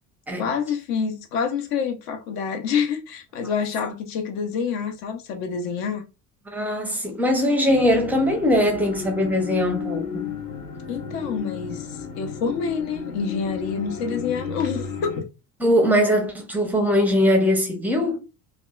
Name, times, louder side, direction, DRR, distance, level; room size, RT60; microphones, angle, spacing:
voice 1, 0.4-6.0 10.9-11.9 12.1-15.3, left 6 dB, 45° left, 0.7 m, -27 dB
voice 2, 6.5-10.3 15.6-18.2, left 1 dB, 5° right, 0.6 m, -21 dB
sound 1, 7.7-15.2, left 6 dB, 75° left, 0.9 m, -33 dB
2.7 x 2.2 x 2.3 m
figure-of-eight pair, 55°, 49 cm